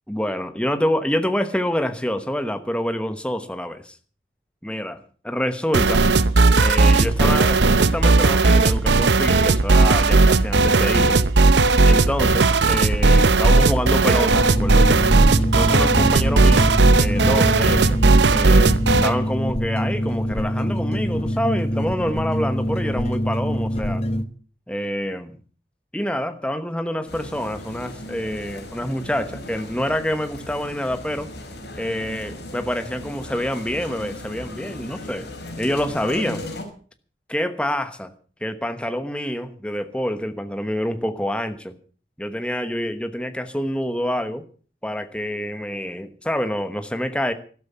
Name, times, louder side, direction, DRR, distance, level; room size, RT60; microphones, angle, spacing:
voice 1, 0.1-4.0 4.6-6.0 6.6-11.2 11.8-15.0 15.5-16.7 17.0-18.0 18.3-24.0 24.7-25.4 25.9-31.3 31.8-35.3 35.6-36.5 37.3-38.1 38.4-41.7 42.2-44.4 44.8-47.3, equal, 5° left, 1.1 m, -27 dB
sound 1, 5.7-19.2, right 3 dB, 85° right, 0.8 m, -16 dB
sound 2, 14.3-24.2, equal, 35° left, 0.9 m, -25 dB
sound 3, 27.1-36.6, left 1 dB, 75° left, 5.4 m, -37 dB
13.0 x 12.0 x 6.8 m
head